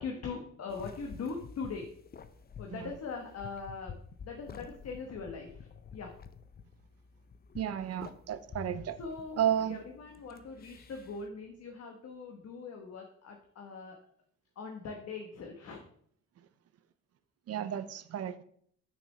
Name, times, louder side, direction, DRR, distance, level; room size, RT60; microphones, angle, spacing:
voice 1, 0.0-1.9 2.6-3.9 4.2-6.2 9.0-14.0 14.5-15.8, left 4 dB, 55° left, 2 dB, 1.2 m, -41 dB
sound 1, 0.7-11.3, left 6 dB, 30° left, 0.5 m, -50 dB
voice 2, 7.5-9.0 9.4-9.8 17.5-18.4, right 10 dB, 55° right, 12 dB, 0.6 m, -32 dB
6.4 x 6.3 x 3.3 m, 0.63 s
cardioid pair, 90°, 30 cm